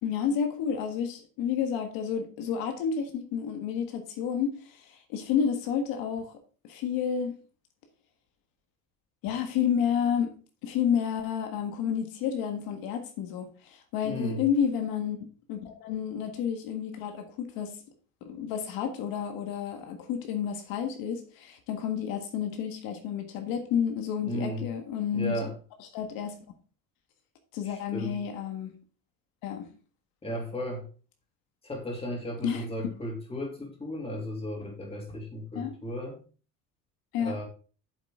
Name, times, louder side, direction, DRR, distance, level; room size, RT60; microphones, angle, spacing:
voice 1, 0.0-6.4 6.6-7.3 9.2-10.3 10.6-15.2 15.5-17.8 18.2-25.4 25.9-26.4 27.5-28.7 29.4-29.7 32.4-32.6 35.5-35.7 37.1-37.4, left 8 dB, 80° left, 1.7 m, -30 dB
voice 2, 14.0-14.4 24.3-24.7 25.1-25.5 27.6-28.2 30.2-30.9 31.6-36.2 37.2-37.4, equal, 15° left, 2.8 m, -35 dB
8.8 x 7.8 x 3.7 m
cardioid pair, 155°, 35 cm